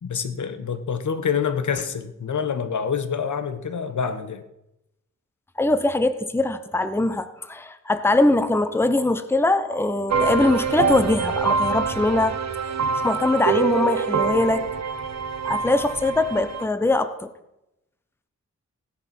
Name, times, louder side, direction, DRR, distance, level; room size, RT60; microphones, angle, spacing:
voice 1, 0.0-4.4, left 6 dB, 70° left, 1.3 m, -26 dB
voice 2, 5.6-12.4 13.0-14.7 15.4-17.3, left 2 dB, 10° left, 0.8 m, -22 dB
sound 1, 10.1-16.6, right 5 dB, 60° right, 1.1 m, -25 dB
16.5 x 10.5 x 6.0 m
wide cardioid pair, 170°, 31 cm